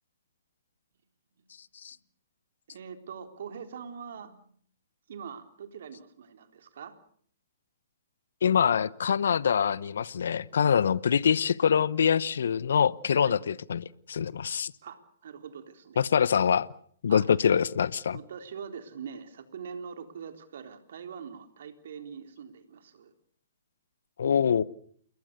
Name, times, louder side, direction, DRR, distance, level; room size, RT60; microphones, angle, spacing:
voice 1, 2.7-4.4 5.1-6.9 13.2-13.4 14.8-16.0 17.1-17.3 18.1-23.1, right 7 dB, 60° right, 3.9 m, -43 dB
voice 2, 8.4-14.7 16.0-16.7 17.0-18.2 24.2-24.6, left 7 dB, 65° left, 1.0 m, -24 dB
29.0 x 21.5 x 6.8 m
hypercardioid pair, 125°, 0 cm